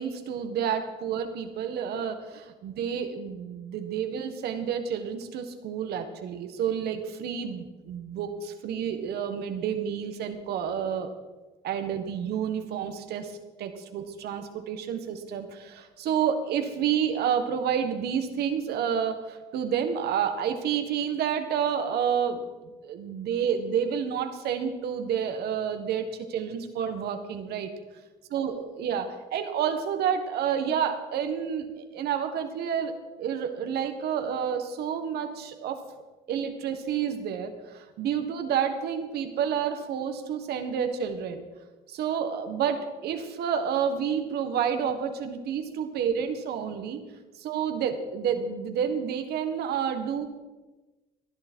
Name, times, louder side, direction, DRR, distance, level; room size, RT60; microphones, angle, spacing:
voice 1, 0.0-11.1 11.6-27.7 28.3-32.9 33.2-35.8 36.3-41.4 41.9-47.0 47.3-50.3, right 8 dB, 70° right, 7 dB, 1.7 m, -29 dB
19.0 x 11.0 x 4.6 m, 1.2 s
cardioid pair, 110°, 17 cm